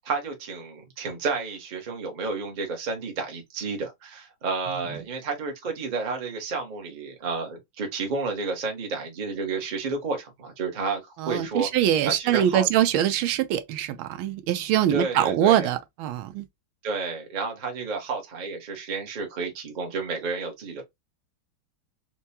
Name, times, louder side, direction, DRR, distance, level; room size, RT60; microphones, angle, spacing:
voice 1, 0.0-11.7 12.0-12.7 14.9-15.7 16.8-20.8, right 4 dB, 40° right, 0.7 m, -31 dB
voice 2, 11.2-16.4, right 11 dB, 85° right, 1.4 m, -23 dB
4.4 x 2.2 x 2.7 m
omnidirectional pair, 2.2 m